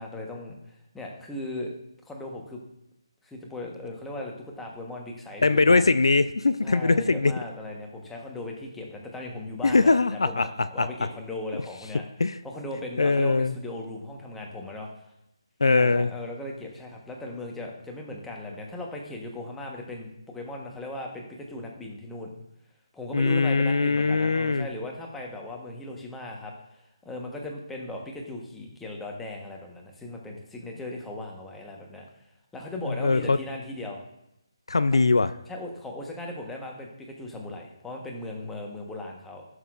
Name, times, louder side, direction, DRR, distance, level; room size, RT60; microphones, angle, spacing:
voice 1, 0.0-1.7 2.1-2.6 3.2-5.8 6.6-9.9 10.2-12.0 12.4-14.9 15.7-22.3 22.9-26.8 27.0-32.0 32.5-34.0 34.9-35.0 35.5-39.5, left 1 dB, 5° left, -1 dB, 1.1 m, -37 dB
voice 2, 5.4-7.3 9.6-10.5 10.8-10.9 11.5-11.6 12.2-12.4 13.0-13.5 15.6-16.1 23.1-24.7 32.9-33.4 34.7-35.3, left 3 dB, 70° left, 13 dB, 0.4 m, -21 dB
11.0 x 6.1 x 2.5 m, 0.84 s
figure-of-eight pair, 155°, 3 cm